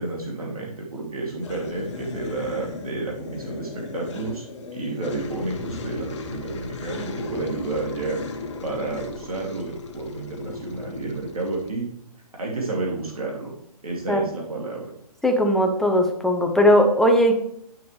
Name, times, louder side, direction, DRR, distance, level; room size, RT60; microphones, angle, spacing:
voice 1, 0.0-4.4 4.7-8.2 8.6-11.9 12.4-13.5 13.8-14.9, right 3 dB, 70° right, -2 dB, 2.6 m, -30 dB
sound 1, 1.4-11.7, left 4 dB, 50° left, 1.2 m, -36 dB
voice 2, 15.2-17.4, equal, ahead, 2 dB, 0.8 m, -18 dB
9.8 x 6.8 x 3.2 m, 0.71 s
figure-of-eight pair, 130°, 20 cm